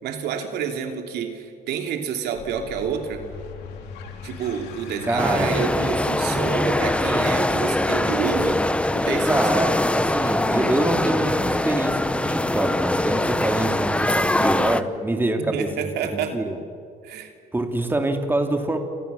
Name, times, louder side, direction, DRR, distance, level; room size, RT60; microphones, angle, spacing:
voice 1, 0.0-3.2 4.2-8.7 8.9-9.5 15.4-16.4 17.0-17.3, right 7 dB, 75° right, 4 dB, 3.1 m, -29 dB
sound 1, 2.3-13.4, left 5 dB, 85° left, 3.8 m, -42 dB
voice 2, 5.0-5.6 9.2-16.6 17.5-18.8, right 2 dB, 10° right, 4 dB, 2.8 m, -25 dB
sound 2, 5.2-14.8, left 1 dB, 5° left, 1.0 m, -22 dB
29.5 x 27.0 x 7.0 m, 2.3 s
cardioid pair, 110°, 17 cm